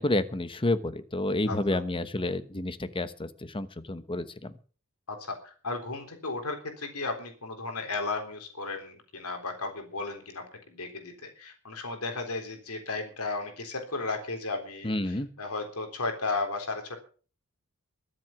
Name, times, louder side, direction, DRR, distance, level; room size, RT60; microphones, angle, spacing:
voice 1, 0.0-4.5 14.8-15.3, left 2 dB, 25° left, 13 dB, 1.1 m, -30 dB
voice 2, 1.5-1.8 5.1-17.0, left 3 dB, 85° left, 5 dB, 3.7 m, -35 dB
22.5 x 7.7 x 6.0 m, 0.40 s
head